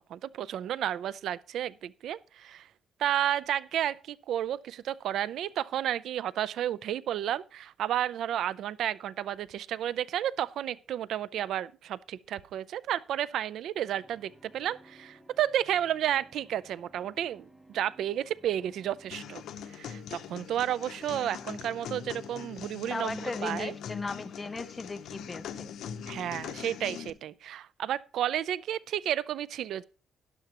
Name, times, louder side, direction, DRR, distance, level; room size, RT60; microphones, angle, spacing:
voice 1, 0.0-2.7 3.0-19.4 19.7-23.7 26.1-29.8, right 11 dB, 80° right, 0.4 m, -32 dB
sound 1, 13.9-19.1, right 1 dB, 5° right, 1.3 m, -58 dB
sound 2, 19.1-27.1, left 8 dB, 80° left, 0.9 m, -42 dB
voice 2, 22.9-25.7, left 3 dB, 20° left, 0.8 m, -37 dB
12.5 x 11.5 x 2.9 m
cardioid pair, 115°, 0 cm